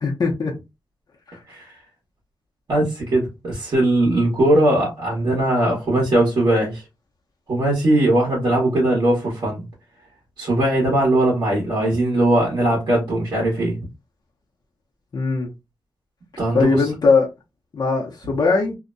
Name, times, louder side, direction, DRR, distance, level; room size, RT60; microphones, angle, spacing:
voice 1, 0.0-0.5 15.1-15.5 16.5-17.3 17.7-18.8, left 4 dB, 55° left, 0.7 m, -19 dB
voice 2, 2.7-6.8 7.5-9.6 10.4-13.8 16.4-16.8, right 1 dB, 60° right, 1.2 m, -19 dB
2.7 x 2.1 x 2.5 m
wide cardioid pair, 155°, 8 cm